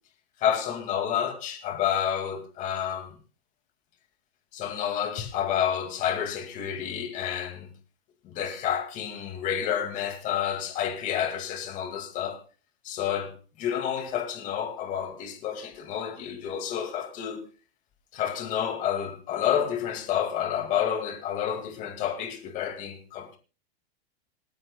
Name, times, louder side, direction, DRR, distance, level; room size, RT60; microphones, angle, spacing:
voice 1, 0.4-3.2 4.5-7.7 8.2-12.4 12.8-17.5 18.1-23.4, left 9 dB, 25° left, 2.1 m, -29 dB
27.5 x 9.6 x 2.2 m
supercardioid pair, 175°, 31 cm